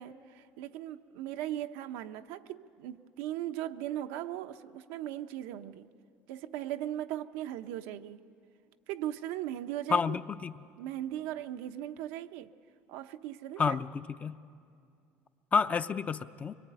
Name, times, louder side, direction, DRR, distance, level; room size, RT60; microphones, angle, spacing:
voice 1, 0.0-5.9 6.3-8.2 8.9-10.2 10.8-12.5 12.9-13.8, right 12 dB, 85° right, 7 dB, 0.8 m, -38 dB
voice 2, 9.9-10.5 13.6-14.4 15.5-16.6, left 5 dB, 30° left, 12 dB, 0.6 m, -29 dB
23.5 x 22.5 x 9.0 m, 2.4 s
cardioid pair, 125°, 5 cm